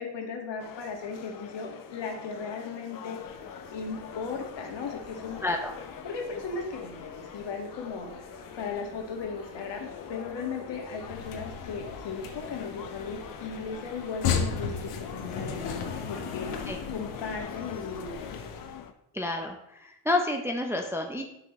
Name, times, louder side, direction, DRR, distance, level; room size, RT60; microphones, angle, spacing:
voice 1, 0.0-3.2 3.7-5.4 6.0-8.1 8.6-16.5 16.9-18.3, left 5 dB, 60° left, 2 dB, 1.9 m, -37 dB
sound 1, 0.6-18.9, left 7 dB, 40° left, 0.7 m, -45 dB
sound 2, 3.1-16.7, left 1 dB, 15° left, 2.0 m, -51 dB
voice 2, 5.4-5.7 16.7-16.8 19.1-21.2, left 2 dB, 5° right, 3 dB, 0.5 m, -29 dB
sound 3, 10.9-18.8, left 6 dB, 85° left, 1.3 m, -35 dB
10.0 x 5.9 x 3.1 m, 0.80 s
cardioid pair, 130°, 49 cm